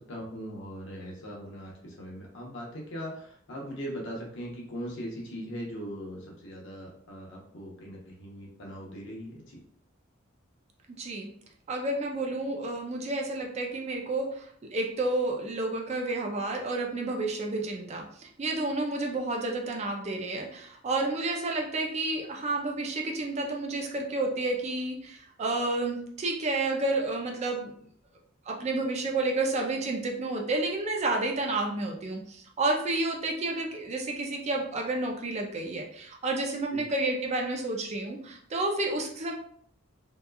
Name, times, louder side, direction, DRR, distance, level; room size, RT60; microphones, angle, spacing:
voice 1, 0.0-9.6 36.7-36.8, equal, 60° left, -2 dB, 0.8 m, -40 dB
voice 2, 11.0-11.3 11.7-27.7 28.5-39.3, right 2 dB, 35° right, 1 dB, 0.4 m, -30 dB
2.8 x 2.2 x 2.2 m, 0.63 s
head